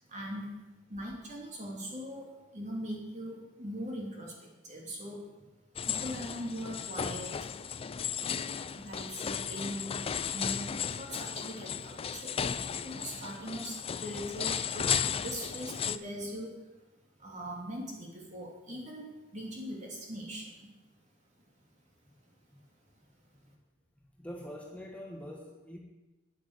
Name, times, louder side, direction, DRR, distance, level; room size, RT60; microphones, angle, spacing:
voice 1, 0.1-0.5 0.9-5.5 5.9-7.5 8.2-8.4 8.7-16.6 17.2-20.7, equal, 40° right, -1 dB, 3.1 m, -41 dB
sound 1, 5.8-16.0, left 7 dB, 30° left, 0.4 m, -35 dB
voice 2, 24.2-25.8, equal, 5° left, 0 dB, 1.2 m, -44 dB
10.0 x 8.3 x 8.3 m, 1.1 s
head